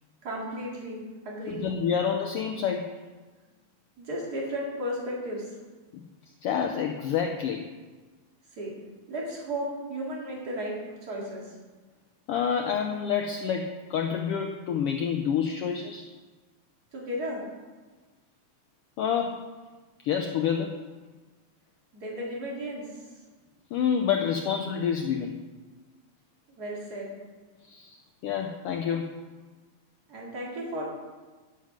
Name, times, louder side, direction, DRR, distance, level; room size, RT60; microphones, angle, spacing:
voice 1, 0.2-1.6 4.0-5.4 8.6-8.7 9.1-10.8 11.0-11.4 16.9-17.4 21.9-22.9 26.6-27.1 30.1-30.9, equal, 35° right, -4 dB, 2.6 m, -34 dB
voice 2, 1.5-2.9 6.4-7.7 12.3-16.1 19.0-19.5 20.0-20.8 23.7-25.4 27.7-28.0 28.2-29.1, left 7 dB, 85° left, 4 dB, 1.3 m, -28 dB
11.0 x 7.3 x 5.1 m, 1.3 s
omnidirectional pair, 3.3 m